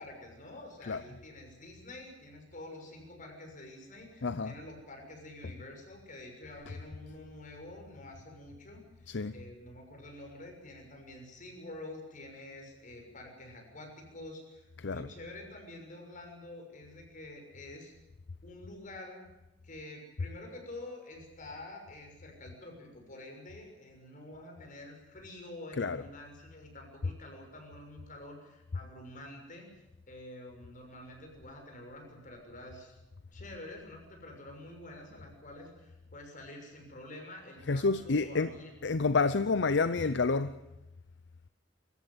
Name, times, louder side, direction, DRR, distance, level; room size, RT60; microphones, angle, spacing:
voice 1, 0.0-17.9 18.4-19.3 19.6-33.0 33.3-38.7, left 1 dB, 45° left, 6.5 m, -48 dB
voice 2, 4.2-4.5 9.1-9.3 14.8-15.1 25.8-26.0 37.7-38.5 38.8-40.6, left 4 dB, 70° left, 0.7 m, -29 dB
24.0 x 14.5 x 9.7 m
head